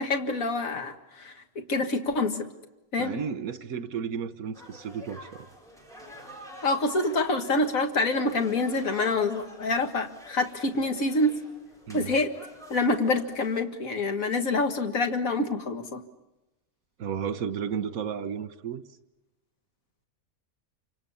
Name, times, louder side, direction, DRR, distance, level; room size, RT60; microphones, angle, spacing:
voice 1, 0.0-2.5 2.9-3.1 6.6-11.3 11.9-12.3 12.7-16.0, left 2 dB, 65° left, 2.2 m, -26 dB
voice 2, 3.0-5.5 11.9-12.1 17.0-18.8, right 7 dB, 70° right, 1.7 m, -33 dB
sound 1, 4.5-13.6, left 1 dB, ahead, 6.8 m, -48 dB
28.0 x 26.5 x 7.2 m
omnidirectional pair, 1.5 m